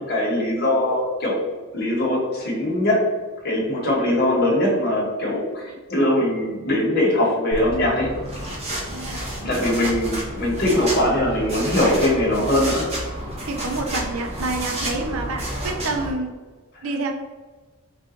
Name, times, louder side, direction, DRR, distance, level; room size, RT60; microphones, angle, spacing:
voice 1, 0.0-1.4 1.7-3.0 3.4-8.1 9.4-12.9, left 1 dB, 45° left, -4 dB, 1.2 m, -21 dB
voice 2, 3.8-4.2 8.9-9.5 13.5-16.3 16.8-17.1, right 3 dB, 70° right, 3 dB, 0.5 m, -28 dB
sound 1, 7.5-16.1, right 1 dB, 30° right, 0.9 m, -30 dB
4.0 x 2.5 x 3.8 m, 1.3 s
head